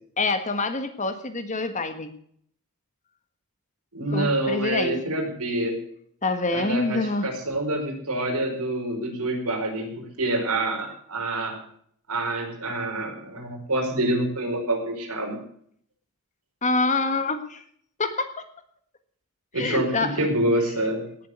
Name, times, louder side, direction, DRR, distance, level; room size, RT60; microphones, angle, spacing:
voice 1, 0.2-2.1 4.1-5.1 6.2-7.3 16.6-17.6 18.0-18.3 19.6-20.2, left 3 dB, 35° left, 9 dB, 1.5 m, -26 dB
voice 2, 3.9-5.8 6.5-9.9 10.2-11.6 12.1-15.4 19.5-21.0, right 1 dB, 90° right, 2 dB, 5.0 m, -26 dB
18.0 x 7.5 x 8.1 m, 0.64 s
head